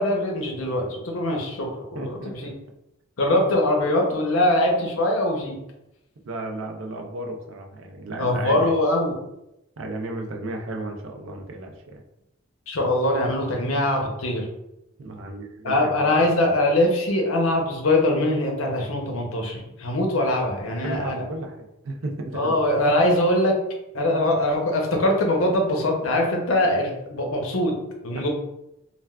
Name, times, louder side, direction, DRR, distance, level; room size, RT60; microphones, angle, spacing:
voice 1, 0.0-2.5 3.2-5.6 8.2-9.1 12.7-14.5 15.6-21.2 22.3-23.5 23.9-27.7 28.0-28.3, left 1 dB, 80° left, 1 dB, 0.7 m, -22 dB
voice 2, 1.9-2.5 6.3-8.7 9.8-12.0 13.5-13.7 15.0-16.1 20.7-22.5 28.1-28.3, right 2 dB, 65° right, 2 dB, 0.5 m, -34 dB
3.3 x 2.3 x 2.2 m, 0.85 s
head